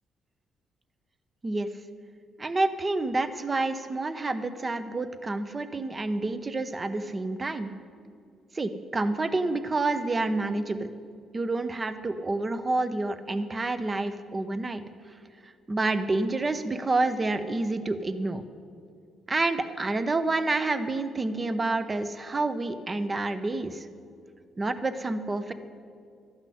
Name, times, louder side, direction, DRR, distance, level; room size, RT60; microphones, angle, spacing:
voice 1, 2.4-7.7 8.5-10.9 11.3-14.8 15.7-18.4 19.3-23.9 24.6-25.5, right 2 dB, 30° right, 10 dB, 0.8 m, -28 dB
12.0 x 5.9 x 9.2 m, 2.3 s
cardioid pair, 90°, 0 cm